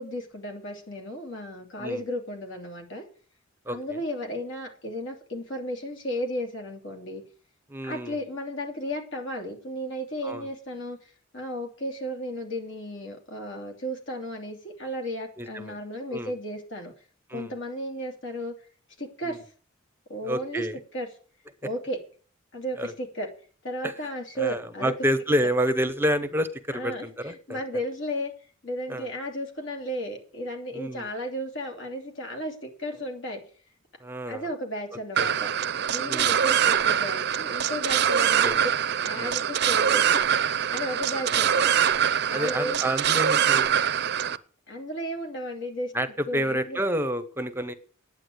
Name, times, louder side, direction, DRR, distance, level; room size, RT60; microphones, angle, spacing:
voice 1, 0.0-3.0 3.7-7.2 7.8-16.9 17.3-18.5 19.0-19.4 20.1-20.7 20.9-21.1 21.6-22.0 22.5-23.3 23.6-24.9 26.7-28.3 28.6-33.4 34.3-35.5 35.9-38.7 39.0-41.7 42.3-42.8 44.7-45.9 46.3-46.8, equal, 65° left, 3 dB, 2.9 m, -34 dB
voice 2, 7.7-8.1 10.2-10.5 15.4-15.8 16.1-16.3 17.3-17.5 20.2-20.8 22.8-22.9 23.8-23.9 24.4-27.6 28.9-29.1 30.7-31.1 34.0-34.4 35.2-35.3 36.1-36.3 38.4-38.6 39.2-39.3 41.3-41.5 42.3-43.7 45.9-46.1 46.3-47.7, equal, 10° right, 10 dB, 0.8 m, -28 dB
sound 1, 35.2-44.4, right 8 dB, 55° right, 0.6 m, -24 dB
9.9 x 8.7 x 8.0 m, 0.43 s
head